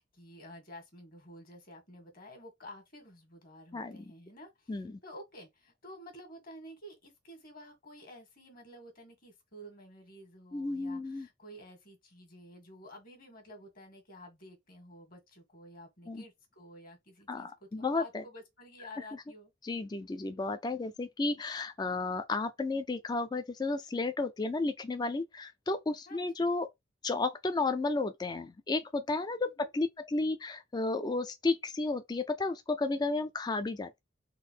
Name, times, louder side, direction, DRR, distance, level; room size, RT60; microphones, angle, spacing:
voice 1, 0.0-19.5 26.1-26.5 29.5-29.7, equal, 45° left, 1.6 m, -51 dB
voice 2, 3.7-4.1 4.7-5.0 10.5-11.3 16.1-16.2 17.3-18.2 19.6-26.7 27.0-34.0, left 3 dB, 20° left, 0.3 m, -33 dB
3.8 x 2.0 x 4.4 m
head